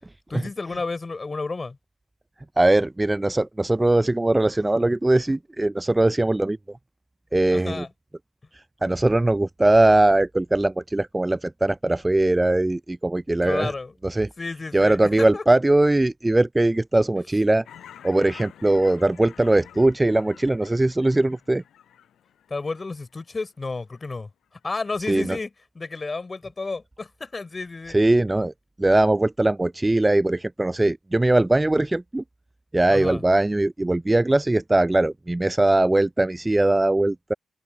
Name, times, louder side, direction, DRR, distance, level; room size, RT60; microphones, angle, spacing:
voice 1, 0.3-1.8 7.5-7.9 13.4-13.9 14.4-15.4 22.5-24.3 24.6-25.5 25.8-28.0 32.9-33.2, left 3 dB, 35° left, 3.6 m, -31 dB
voice 2, 2.6-6.8 7.3-7.9 8.5-13.7 14.0-14.3 14.7-17.7 18.0-21.6 25.1-25.4 27.9-28.5 28.8-32.2 32.7-37.3, right 2 dB, 20° right, 0.4 m, -20 dB
Fowl / Chirp tweet, 17.7-23.5 23.9-24.1, left 10 dB, 80° left, 7.9 m, -48 dB
supercardioid pair, 50°, 0 cm